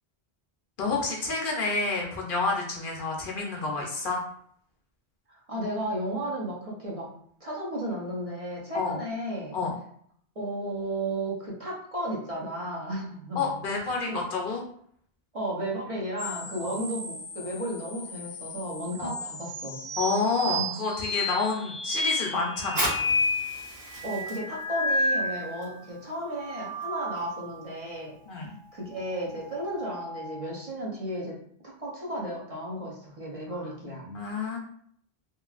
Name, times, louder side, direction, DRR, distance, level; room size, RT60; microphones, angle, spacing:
voice 1, 0.8-4.2 8.7-9.0 9.5-9.8 13.4-14.6 16.6-16.8 19.0-19.1 20.0-22.9 28.3-28.5 34.0-34.6, left 3 dB, 60° left, 0 dB, 0.7 m, -29 dB
voice 2, 5.3-7.1 7.4-9.5 10.4-13.6 14.1-14.2 15.3-19.8 20.5-20.8 24.0-28.2 28.7-31.4 31.6-34.1, right 1 dB, 40° right, -4 dB, 0.7 m, -34 dB
sound 1, 16.2-25.7 26.2-27.6 29.4-30.5, left 1 dB, 80° right, 0.9 m, -32 dB
Fire, 22.6-29.8, equal, 65° right, 1.5 m, -39 dB
3.0 x 2.4 x 2.4 m, 0.64 s
omnidirectional pair, 1.1 m